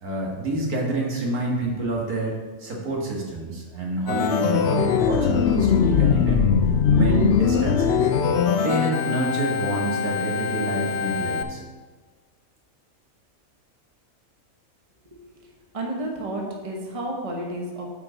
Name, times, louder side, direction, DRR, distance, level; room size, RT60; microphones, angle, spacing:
voice 1, 0.0-6.6 6.9-8.1 8.6-11.6, right 2 dB, 90° right, -2 dB, 2.1 m, -27 dB
Organ, 4.1-11.4, left 7 dB, 65° left, 0.7 m, -21 dB
voice 2, 15.0-15.5 15.7-17.9, right 1 dB, 25° right, 0 dB, 1.2 m, -32 dB
8.7 x 4.8 x 5.0 m, 1.4 s
omnidirectional pair, 1.5 m